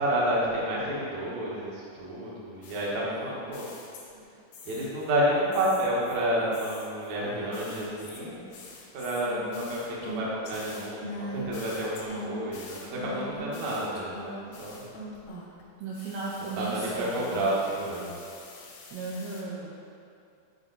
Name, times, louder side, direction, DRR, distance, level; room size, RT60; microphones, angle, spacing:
voice 1, 0.0-3.7 4.7-8.4 8.9-14.8 16.5-18.1, right 1 dB, 70° right, -6 dB, 1.6 m, -30 dB
sound 1, 2.6-4.2 4.5-5.1 5.5-15.6 15.9-19.4, equal, 70° left, 2.4 m, -42 dB
voice 2, 15.8-17.4 18.9-19.8, right 3 dB, 85° right, -5 dB, 2.3 m, -35 dB
10.0 x 4.6 x 4.1 m, 2.5 s
omnidirectional pair, 5.5 m